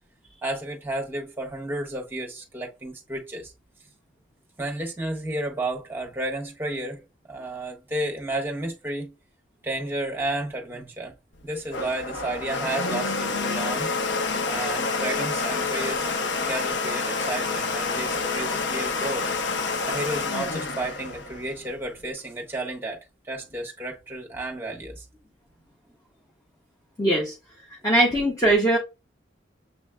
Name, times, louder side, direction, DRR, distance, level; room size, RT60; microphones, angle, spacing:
voice 1, 0.4-3.5 4.6-9.1 9.6-11.1 11.4-13.9 14.4-16.1 16.4-19.3 19.9-25.0, right 1 dB, 10° right, 1.2 m, -32 dB
Domestic sounds home sounds, 11.4-22.1, left 4 dB, 65° left, 0.6 m, -28 dB
voice 2, 27.0-27.3 27.8-28.8, right 1 dB, 15° left, 1.1 m, -20 dB
7.2 x 3.0 x 2.2 m
head